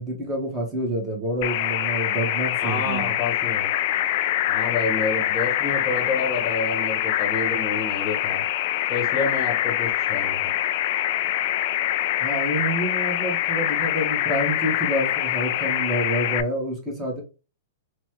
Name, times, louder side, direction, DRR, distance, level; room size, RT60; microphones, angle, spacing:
voice 1, 0.0-3.1 12.2-17.2, right 1 dB, 15° right, -1 dB, 1.4 m, -28 dB
sound 1, 1.4-16.4, left 13 dB, 45° left, 0.3 m, -24 dB
voice 2, 2.6-3.7 4.4-8.4 8.9-10.5, left 3 dB, 20° left, 0 dB, 1.1 m, -29 dB
4.0 x 2.4 x 3.1 m, 0.31 s
hypercardioid pair, 150°, 0 cm